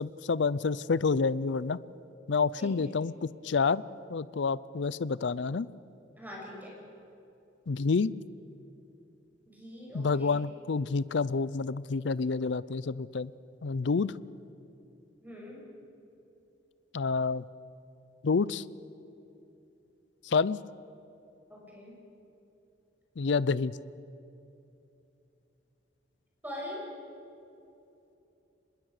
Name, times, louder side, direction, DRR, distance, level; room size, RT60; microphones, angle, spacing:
voice 1, 0.0-1.8 2.3-3.8 4.1-5.7 7.7-8.1 9.9-13.3 13.6-14.2 16.9-17.4 18.2-18.6 20.2-20.6 23.2-23.8, left 4 dB, 70° left, 19 dB, 0.5 m, -28 dB
voice 2, 2.6-2.9 6.2-6.7 9.5-10.4 15.2-15.6 21.5-22.0 26.4-26.8, left 1 dB, 10° right, -2 dB, 6.3 m, -43 dB
25.0 x 21.0 x 6.6 m, 2.8 s
head